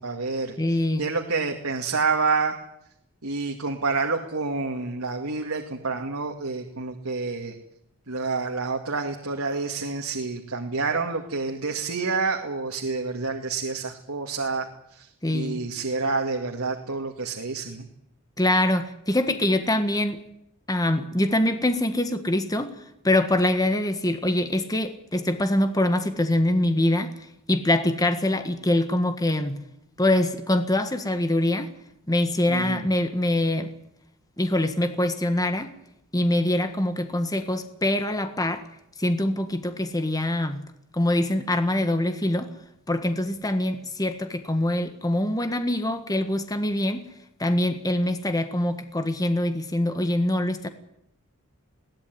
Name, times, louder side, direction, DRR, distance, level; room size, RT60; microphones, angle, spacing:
voice 1, 0.0-0.5 1.0-2.6 3.2-7.5 8.1-14.7 14.9-17.9 32.5-32.8, right 4 dB, 85° right, 3 dB, 2.2 m, -28 dB
voice 2, 0.6-1.0 15.2-15.6 18.4-20.2 20.7-22.7 23.0-27.1 27.5-29.6 30.0-31.7 32.1-33.7 34.4-35.7 36.1-38.6 39.0-40.6 40.9-42.5 42.9-47.0 47.4-50.7, left 1 dB, 15° left, 8 dB, 1.6 m, -24 dB
22.0 x 17.5 x 9.6 m, 0.78 s
head